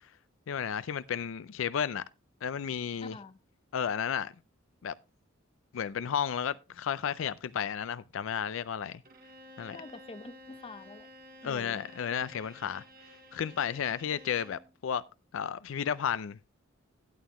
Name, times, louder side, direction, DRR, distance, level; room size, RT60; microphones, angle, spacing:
voice 1, 0.5-2.0 2.4-3.2 3.7-4.3 4.8-4.9 5.7-9.0 9.6-9.8 11.4-12.8 13.3-15.0 15.3-16.4, left 8 dB, 70° left, 0.4 m, -33 dB
voice 2, 3.0-3.4 9.7-11.1 11.4-11.9, left 3 dB, 25° left, 0.6 m, -46 dB
Bowed string instrument, 9.0-14.7, equal, 45° right, 1.6 m, -52 dB
12.5 x 9.1 x 3.0 m
head